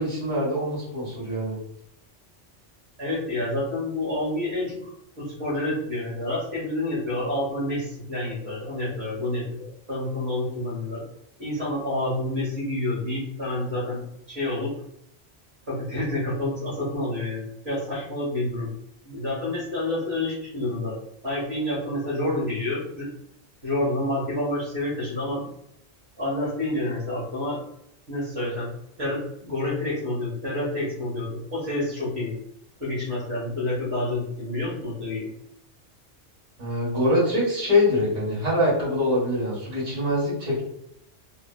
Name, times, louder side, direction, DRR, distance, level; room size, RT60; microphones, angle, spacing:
voice 1, 0.0-1.6 36.6-40.6, left 1 dB, 30° right, -9 dB, 1.3 m, -24 dB
voice 2, 3.0-4.9 5.2-11.0 11.4-14.0 14.3-14.7 15.7-18.7 19.0-21.0 21.2-23.1 23.6-25.5 26.2-27.6 28.1-28.7 29.0-32.3 32.8-35.3, left 1 dB, 55° right, -8 dB, 1.5 m, -28 dB
2.7 x 2.7 x 2.2 m, 0.76 s
omnidirectional pair, 1.3 m